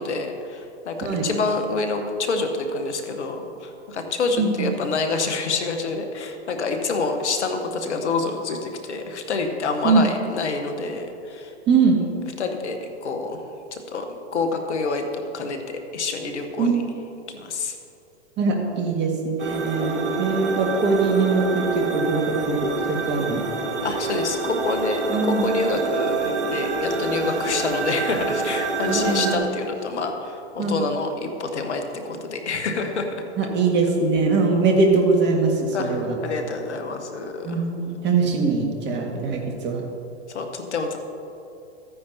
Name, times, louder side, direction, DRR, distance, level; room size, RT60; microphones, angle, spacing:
voice 1, 0.0-11.5 12.4-13.4 13.7-15.6 15.9-16.8 17.3-17.8 23.8-33.2 35.7-37.6 40.3-41.0, left 3 dB, 80° left, 6 dB, 1.2 m, -27 dB
voice 2, 4.4-4.7 9.8-10.0 11.7-12.0 16.6-16.8 18.4-23.4 25.1-25.5 28.9-29.4 30.6-30.8 33.4-36.2 37.4-39.8, right 4 dB, 30° right, 1 dB, 1.8 m, -22 dB
sound 1, 19.4-29.4, right 3 dB, 90° right, 1.6 m, -27 dB
13.5 x 9.5 x 2.8 m, 2.7 s
hypercardioid pair, 105°, 34 cm